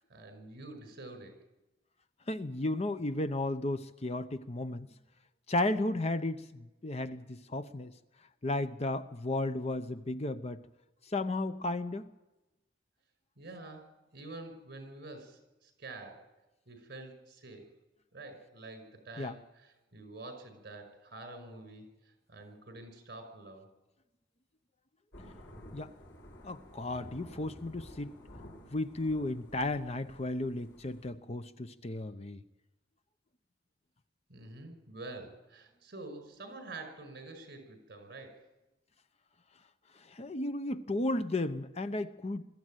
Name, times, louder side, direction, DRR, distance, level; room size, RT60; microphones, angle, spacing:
voice 1, 0.0-1.3 13.4-16.3 16.7-17.6 18.1-21.9 22.3-23.7 34.3-38.5, right 2 dB, 55° right, 7 dB, 5.6 m, -47 dB
voice 2, 2.3-4.9 5.5-7.9 8.4-10.6 11.1-12.1 19.2-19.3 25.7-25.9 26.4-28.1 28.7-32.4 40.1-42.4, left 2 dB, 35° left, 11 dB, 0.8 m, -34 dB
Thunder / Rain, 25.1-31.1, equal, 90° left, 6.9 m, -52 dB
22.0 x 14.0 x 9.1 m, 1.0 s
head